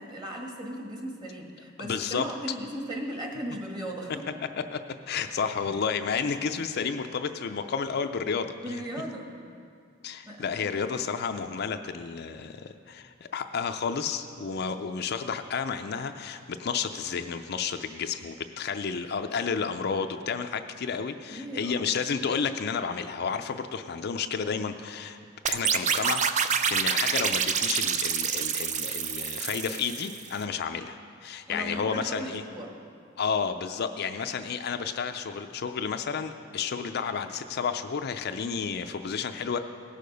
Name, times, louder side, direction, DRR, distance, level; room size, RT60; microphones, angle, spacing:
voice 1, 0.0-4.3 8.6-9.3 10.2-10.8 21.3-21.9 31.5-32.7, right 1 dB, 20° right, 0 dB, 1.5 m, -37 dB
voice 2, 1.8-2.3 4.6-4.8 5.1-8.8 10.0-25.2 25.5-32.4 33.2-39.6, left 6 dB, 55° left, 7 dB, 0.4 m, -31 dB
sound 1, 25.5-30.3, right 7 dB, 35° right, 0.5 m, -27 dB
17.5 x 6.6 x 5.2 m, 2.3 s
head